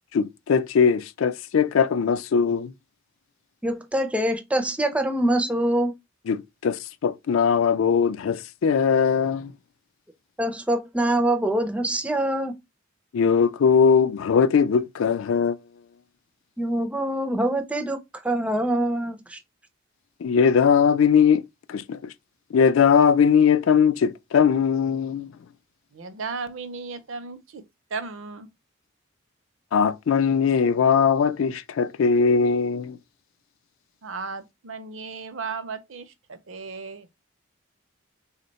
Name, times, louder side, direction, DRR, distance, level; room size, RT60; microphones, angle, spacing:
voice 1, 0.1-2.7 6.3-9.5 13.1-15.6 20.2-21.4 21.7-22.1 22.5-25.3 29.7-33.0, left 6 dB, 75° left, 0.4 m, -20 dB
voice 2, 3.6-5.9 10.4-12.6 16.6-19.4, right 1 dB, 5° right, 0.4 m, -24 dB
voice 3, 25.9-27.6 27.9-28.5 34.0-37.1, right 4 dB, 65° right, 0.6 m, -35 dB
3.6 x 2.2 x 3.9 m
head